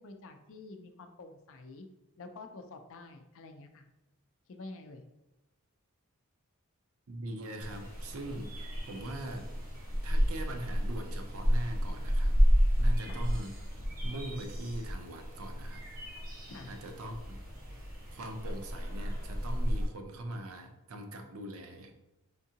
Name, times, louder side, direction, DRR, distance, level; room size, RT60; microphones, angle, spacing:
voice 1, 0.0-1.9 2.2-3.9 4.5-5.0 13.0-13.2 16.5-16.7, left 3 dB, 60° left, 6 dB, 0.5 m, -48 dB
voice 2, 7.1-9.6 10.0-12.4 12.8-13.6 14.0-15.8 16.7-17.4 18.1-21.9, right 1 dB, 65° right, 5 dB, 0.6 m, -41 dB
sound 1, 7.6-19.8, equal, 40° right, 1.1 m, -31 dB
3.7 x 3.6 x 2.8 m, 0.98 s
head